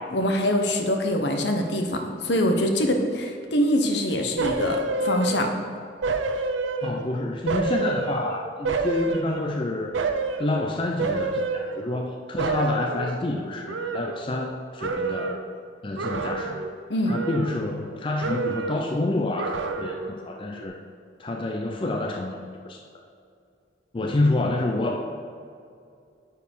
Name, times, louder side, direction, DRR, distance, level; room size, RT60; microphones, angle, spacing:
voice 1, 0.1-5.5 16.9-17.2, equal, 65° left, 4 dB, 0.9 m, -24 dB
sound 1, 4.4-5.7 6.0-7.1 7.5-9.6 9.9-10.5 11.0-12.1 12.4-14.5 14.8-15.5 16.0-16.8 17.1-17.9 18.2-18.9 19.4-20.2 20.5-20.6, right 3 dB, 90° right, 0.6 m, -29 dB
voice 2, 6.8-10.0 10.4-15.4 15.8-16.7 17.1-20.8 21.2-22.4 22.6-22.9 23.9-25.0, left 2 dB, 25° left, 2 dB, 0.4 m, -28 dB
9.5 x 4.7 x 5.4 m, 2.4 s
head